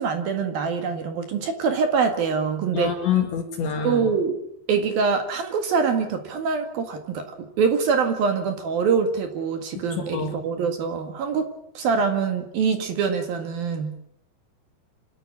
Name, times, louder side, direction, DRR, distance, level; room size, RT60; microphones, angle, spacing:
voice 1, 0.0-2.9 3.8-4.4 4.7-7.2 7.6-11.5 11.7-13.9, right 5 dB, 55° right, 6 dB, 3.1 m, -24 dB
voice 2, 2.7-4.0 10.0-10.4, left 8 dB, 65° left, 2 dB, 4.2 m, -26 dB
27.5 x 13.0 x 9.9 m, 0.74 s
omnidirectional pair, 5.9 m